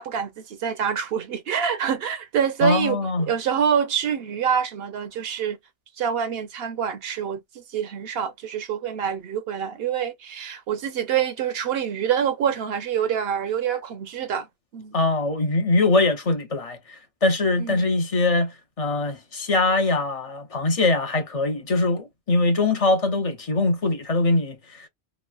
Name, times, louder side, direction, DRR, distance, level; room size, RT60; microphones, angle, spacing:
voice 1, 0.0-3.0 3.3-5.6 6.0-14.5 14.7-14.9 17.6-17.9, right 8 dB, 75° right, 0.8 m, -26 dB
voice 2, 2.6-3.3 14.9-24.9, left 2 dB, 45° left, 0.5 m, -22 dB
3.0 x 2.2 x 2.2 m
omnidirectional pair, 1.1 m